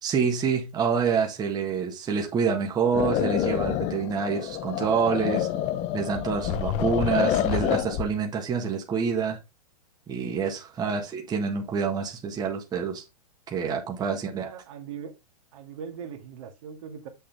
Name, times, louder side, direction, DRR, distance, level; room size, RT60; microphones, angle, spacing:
voice 1, 0.0-5.5 5.9-9.4 10.1-13.0 13.5-14.5, right 6 dB, 20° right, 1.6 m, -27 dB
sound 1, 2.9-8.1, left 11 dB, 35° left, 0.9 m, -27 dB
voice 2, 14.2-15.1 15.5-17.1, right 7 dB, 60° right, 2.0 m, -40 dB
7.3 x 6.7 x 3.5 m
hypercardioid pair, 120°, 20 cm